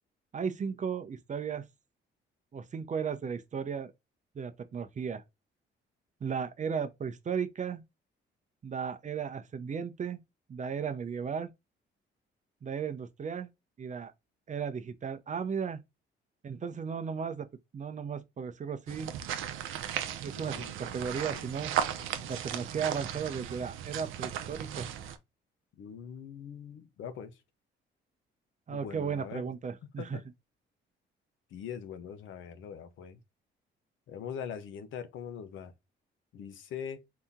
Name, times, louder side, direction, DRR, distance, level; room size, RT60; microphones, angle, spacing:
voice 1, 0.3-1.7 2.5-3.9 4.3-5.2 6.2-7.8 8.6-10.2 10.5-11.5 12.6-13.5 13.8-14.1 14.5-15.8 16.4-17.5 17.7-19.1 20.2-21.7 22.3-24.9 28.7-30.2, right 6 dB, 40° right, 0.6 m, -35 dB
sound 1, 18.9-25.2, right 9 dB, 85° right, 0.6 m, -36 dB
voice 2, 20.3-21.0 21.3-21.5 22.0-22.3 22.6-22.7 25.8-27.4 28.7-29.5 30.0-30.2 31.5-33.2 34.1-35.7 36.3-37.0, left 8 dB, 75° left, 0.8 m, -42 dB
4.1 x 2.8 x 3.6 m
cardioid pair, 90°, 20 cm